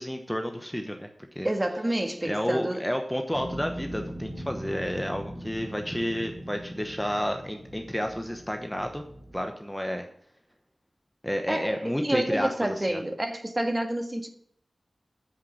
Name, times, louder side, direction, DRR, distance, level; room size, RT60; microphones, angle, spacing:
voice 1, 0.0-1.5 2.2-9.0 9.3-10.1 11.2-13.0, equal, 5° left, 1.0 m, -31 dB
voice 2, 1.4-2.8 11.5-14.3, right 1 dB, 25° right, 1.6 m, -28 dB
sound 1, 3.3-9.4, equal, 45° right, 5.0 m, -40 dB
7.9 x 6.9 x 7.6 m
wide cardioid pair, 65°, 0 cm